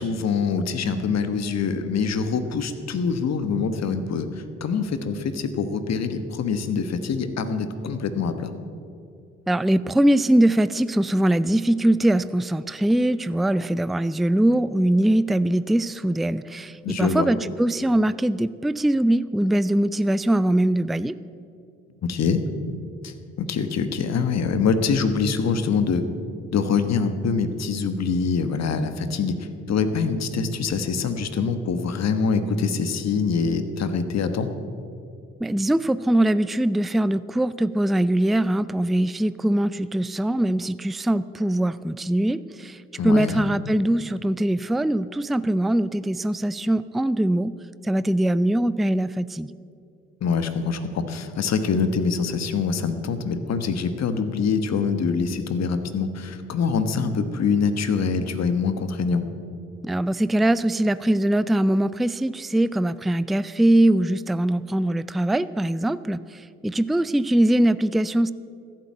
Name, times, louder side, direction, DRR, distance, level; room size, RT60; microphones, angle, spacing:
voice 1, 0.0-8.5 16.8-17.3 22.0-22.4 23.0-26.0 26.5-34.5 43.0-43.5 50.2-59.2, left 5 dB, 60° left, 10 dB, 1.3 m, -24 dB
voice 2, 9.5-21.1 35.4-42.8 43.0-47.5 47.8-49.5 59.8-68.3, right 1 dB, ahead, 16 dB, 0.4 m, -22 dB
14.5 x 7.6 x 8.5 m, 2.4 s
hypercardioid pair, 50°, 31 cm